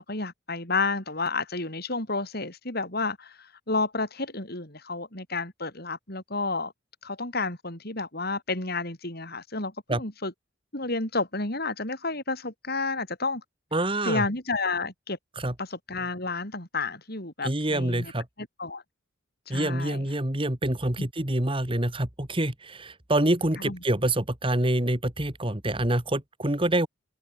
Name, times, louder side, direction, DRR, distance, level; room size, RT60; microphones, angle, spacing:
voice 1, 0.0-6.7 7.0-10.3 10.7-13.4 14.0-15.2 15.6-18.1 18.4-18.8 19.5-20.0 21.0-21.1 23.6-23.8, left 3 dB, 50° left, 6.8 m, -31 dB
voice 2, 13.7-14.2 15.4-15.5 17.4-18.2 19.5-26.9, right 1 dB, 25° right, 2.2 m, -26 dB
head